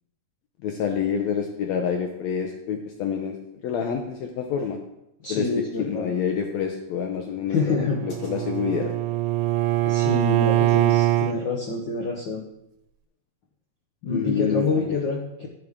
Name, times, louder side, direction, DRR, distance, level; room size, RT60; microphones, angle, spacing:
voice 1, 0.6-3.4 3.6-4.8 5.3-5.5 5.8-7.6 7.8-8.9 14.1-15.0, left 7 dB, 70° left, 3 dB, 1.9 m, -27 dB
voice 2, 5.2-6.1 7.5-8.0 9.8-12.4 14.0-15.5, left 3 dB, 85° left, 0 dB, 1.0 m, -27 dB
Bowed string instrument, 7.6-11.4, right 15 dB, 85° right, 2.0 m, -23 dB
15.0 x 5.2 x 3.6 m, 0.84 s
omnidirectional pair, 3.5 m